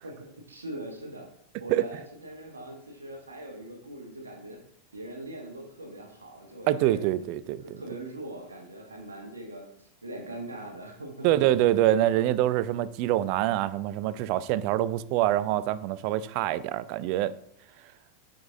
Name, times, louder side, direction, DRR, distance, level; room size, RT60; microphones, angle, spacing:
voice 1, 0.0-1.3 1.6-4.6 4.9-7.2 7.6-11.3, right 1 dB, 75° right, 1.2 m, -41 dB
voice 2, 6.7-7.8 11.2-17.3, right 13 dB, 45° right, 0.3 m, -25 dB
9.3 x 5.0 x 2.7 m
figure-of-eight pair, 90°, 0 cm